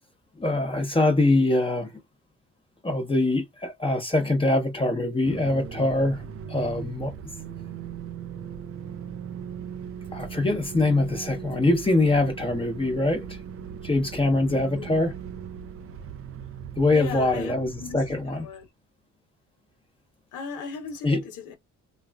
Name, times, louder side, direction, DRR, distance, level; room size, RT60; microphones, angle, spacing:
voice 1, 0.4-1.9 2.8-7.2 10.1-13.4 13.8-15.1 16.8-18.4 21.0-21.2, left 2 dB, 15° left, 0.9 m, -23 dB
sound 1, 5.2-18.7, right 7 dB, 50° right, 0.5 m, -39 dB
voice 2, 14.5-14.9 16.9-17.5 17.8-18.0 18.4-18.7 20.3-21.5, left 5 dB, 80° left, 1.0 m, -36 dB
3.2 x 2.3 x 2.3 m
cardioid pair, 90°, 30 cm